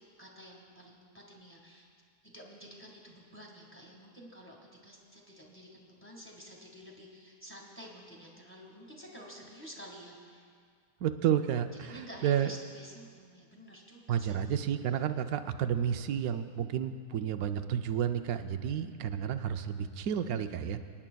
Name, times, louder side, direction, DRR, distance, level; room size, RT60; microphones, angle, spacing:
voice 1, 0.0-1.9 2.2-4.6 4.8-10.5 11.7-14.4, equal, 10° left, -2 dB, 1.6 m, -50 dB
voice 2, 11.0-12.5 14.1-20.8, right 9 dB, 70° right, 9 dB, 1.0 m, -31 dB
25.0 x 10.0 x 2.3 m, 2.1 s
omnidirectional pair, 1.7 m